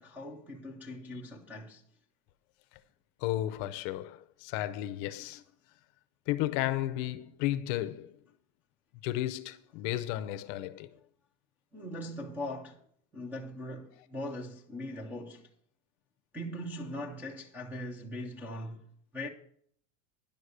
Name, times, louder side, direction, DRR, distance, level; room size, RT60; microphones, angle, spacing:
voice 1, 0.0-1.8 11.7-12.8 13.1-15.5 16.3-19.3, left 1 dB, 5° right, 0.3 m, -40 dB
voice 2, 3.2-5.4 6.3-8.2 9.0-10.9, left 14 dB, 40° left, 0.6 m, -33 dB
10.5 x 6.3 x 6.7 m
supercardioid pair, 165°, 38 cm